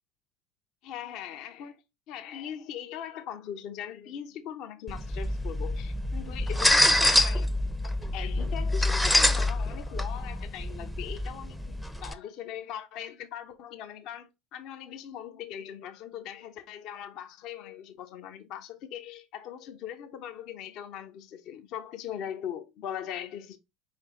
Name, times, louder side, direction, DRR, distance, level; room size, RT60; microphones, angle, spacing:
voice 1, 0.8-1.8 2.1-7.5 7.8-23.6, left 9 dB, 50° left, 0.5 m, -40 dB
sound 1, 4.9-12.1, left 1 dB, 5° left, 0.5 m, -26 dB
4.7 x 3.3 x 2.9 m
figure-of-eight pair, 65°, 0 cm